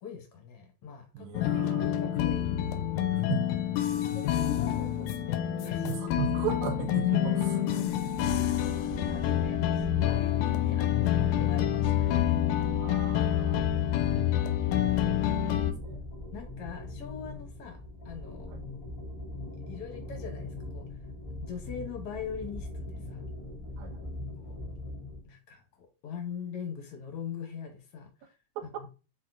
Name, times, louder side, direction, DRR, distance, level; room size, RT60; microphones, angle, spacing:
voice 1, 0.0-2.5 2.8-3.3 4.1-5.9 8.3-8.8 9.1-12.4 16.3-17.8 18.1-18.5 19.7-20.9 21.4-23.2 24.4-24.6 25.2-28.1 28.6-28.9, left 7 dB, 60° left, 1.7 m, -42 dB
voice 2, 1.1-1.9 3.3-3.5 5.8-7.8 9.2-9.8 12.8-13.8 15.5-16.0 18.5-18.6 23.8-24.1, right 10 dB, 85° right, 2.1 m, -37 dB
sound 1, 1.3-15.7, left 11 dB, 85° left, 2.0 m, -27 dB
sound 2, 8.1-25.2, left 2 dB, 25° left, 0.8 m, -41 dB
4.4 x 4.2 x 2.5 m
omnidirectional pair, 3.4 m